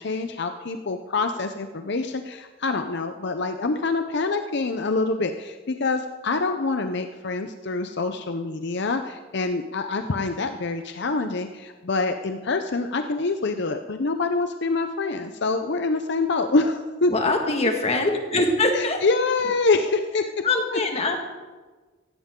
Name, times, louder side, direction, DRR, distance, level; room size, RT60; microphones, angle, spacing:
voice 1, 0.0-17.4 18.7-20.2, left 3 dB, 60° left, 7 dB, 0.7 m, -26 dB
voice 2, 17.1-19.0 20.4-21.2, left 2 dB, 35° left, 3 dB, 1.9 m, -23 dB
16.5 x 16.5 x 3.8 m, 1.3 s
head